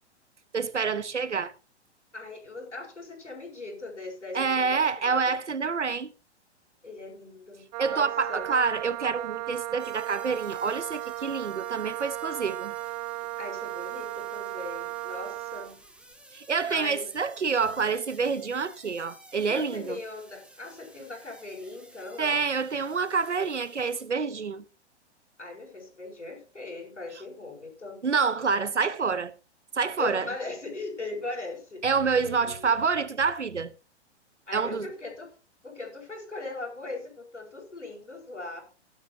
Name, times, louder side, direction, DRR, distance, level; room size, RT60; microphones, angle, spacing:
voice 1, 0.5-1.5 4.3-6.1 7.8-12.7 16.3-20.0 22.2-24.6 28.0-29.3 29.7-30.3 31.8-33.7 34.5-34.9, right 5 dB, 80° right, 1.2 m, -27 dB
voice 2, 2.1-5.4 6.8-8.5 13.4-15.8 16.7-17.1 19.5-22.4 25.4-28.0 30.0-31.9 32.2-32.7 34.5-35.3 35.6-38.6, left 2 dB, 85° left, 7.1 m, -39 dB
Wind instrument woodwind instrument, 7.7-15.8, right 16 dB, 35° right, 0.7 m, -36 dB
sound 1, 9.8-24.0, right 1 dB, 5° right, 2.3 m, -54 dB
16.5 x 12.0 x 2.9 m
figure-of-eight pair, 110°, 35 cm